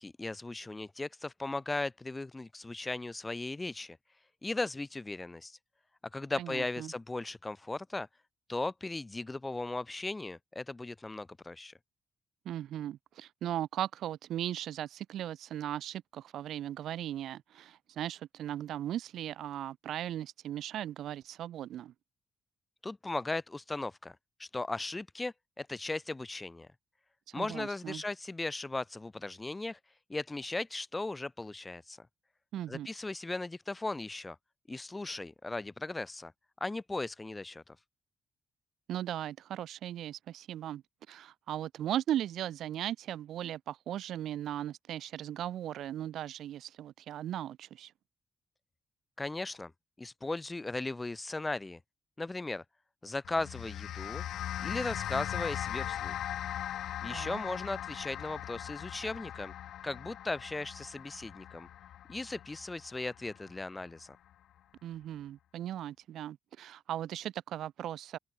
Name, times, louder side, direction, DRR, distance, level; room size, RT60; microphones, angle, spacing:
voice 1, 0.0-4.0 4.4-5.6 6.1-8.1 8.5-11.7 22.8-26.7 27.3-29.8 30.1-32.1 32.7-34.4 34.7-36.3 36.6-37.8 49.2-49.7 50.0-51.8 52.2-52.6 53.0-54.2 54.6-56.2 57.0-59.5 59.8-61.7 62.1-64.1, left 2 dB, 15° left, 0.5 m, -37 dB
voice 2, 6.4-6.9 12.4-21.9 27.3-28.0 32.5-32.9 38.9-40.8 41.1-47.9 57.1-57.4 64.8-68.2, right 11 dB, 90° right, 2.4 m, -37 dB
sound 1, 53.2-63.8, left 11 dB, 85° left, 1.0 m, -39 dB
open air
cardioid pair, 130°, 0 cm